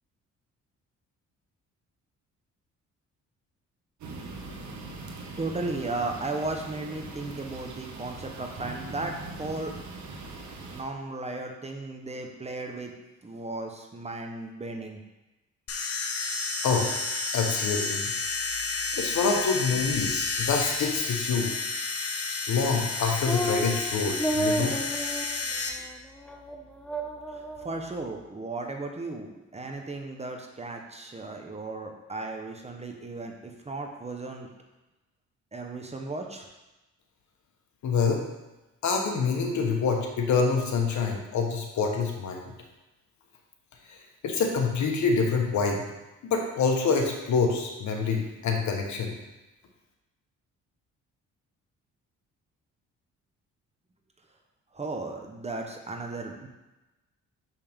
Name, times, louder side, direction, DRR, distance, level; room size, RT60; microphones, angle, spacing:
sound 1, 4.0-10.8, right 3 dB, 70° right, 1.1 m, -41 dB
voice 1, 5.4-9.7 10.7-12.9 13.2-15.0 27.3-34.5 35.5-36.5 54.7-56.5, right 2 dB, 20° right, 2 dB, 0.9 m, -35 dB
sound 2, 15.7-25.7, left 4 dB, 50° left, 1.0 m, -31 dB
voice 2, 16.6-17.0 17.3-18.1 18.9-21.6 22.5-24.7 37.8-38.2 38.8-42.5 43.9-44.0 44.2-45.8 46.2-49.1, left 5 dB, 70° left, 2 dB, 1.2 m, -26 dB
sound 3, 23.3-23.8 24.2-25.4 25.7-25.8 26.2-26.6 26.8-27.7, right 1 dB, 5° left, 0.7 m, -30 dB
6.4 x 5.5 x 3.6 m, 1.0 s
cardioid pair, 90°, 30 cm